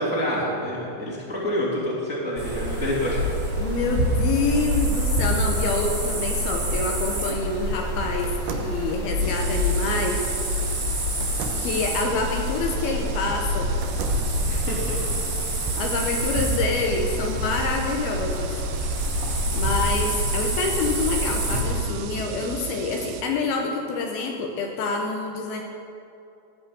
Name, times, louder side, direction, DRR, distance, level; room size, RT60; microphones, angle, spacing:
voice 1, 0.0-3.2 14.5-15.2, equal, 5° right, -7 dB, 2.1 m, -27 dB
sound 1, 2.4-21.8, equal, 35° right, 1.5 m, -26 dB
voice 2, 3.6-10.3 11.6-13.7 15.6-18.5 19.5-25.6, left 3 dB, 75° left, 2 dB, 2.6 m, -27 dB
sound 2, 6.3-7.5 8.2-10.1 11.2-13.0 13.5-14.4, right 4 dB, 70° right, 2.2 m, -38 dB
sound 3, 9.2-23.2, right 10 dB, 85° right, 2.8 m, -38 dB
16.0 x 5.5 x 8.7 m, 2.8 s
omnidirectional pair, 4.8 m